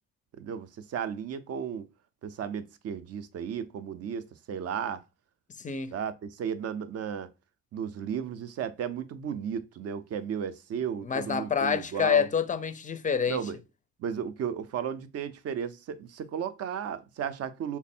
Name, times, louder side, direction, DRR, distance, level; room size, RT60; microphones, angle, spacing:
voice 1, 0.4-1.9 2.2-5.0 5.9-7.3 7.7-12.3 13.3-13.6 14.0-17.8, right 8 dB, 55° right, 0.5 m, -34 dB
voice 2, 5.6-5.9 11.0-13.5, left 7 dB, 25° left, 0.4 m, -27 dB
3.4 x 2.0 x 4.1 m
cardioid pair, 90°, 30 cm